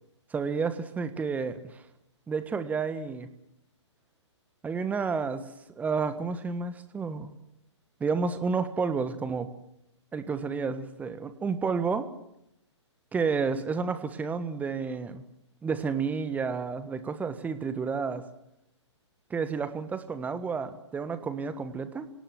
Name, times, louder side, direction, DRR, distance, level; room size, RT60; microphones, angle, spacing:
voice 1, 0.3-1.8 2.3-3.3 4.6-5.5 5.8-7.3 8.0-9.5 10.1-12.1 13.1-15.2 15.6-18.2 19.3-22.1, right 5 dB, 10° right, 11 dB, 1.5 m, -30 dB
28.0 x 18.0 x 7.5 m, 0.81 s
figure-of-eight pair, 125°, 16 cm